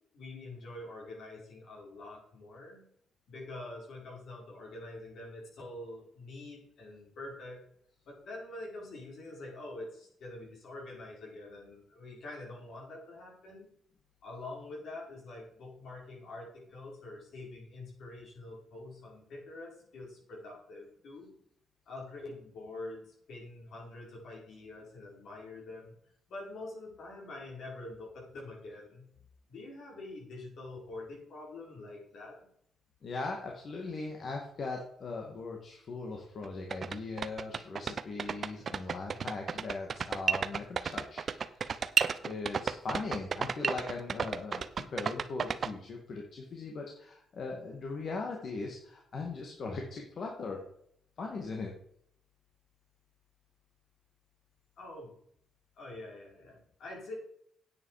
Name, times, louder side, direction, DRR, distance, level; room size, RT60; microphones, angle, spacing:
voice 1, 0.1-2.9 3.3-7.6 8.1-13.7 14.2-21.3 21.9-25.9 26.3-29.1 29.5-32.5 54.8-55.2 55.8-57.1, left 2 dB, 65° left, -2 dB, 5.6 m, -45 dB
voice 2, 33.0-41.8 42.2-50.6 51.2-51.7, left 3 dB, 50° left, 1 dB, 2.2 m, -39 dB
sound 1, 36.4-36.5 36.7-45.7, right 6 dB, 45° right, 0.7 m, -32 dB
9.6 x 8.7 x 5.1 m, 0.69 s
cardioid pair, 90°, 0 cm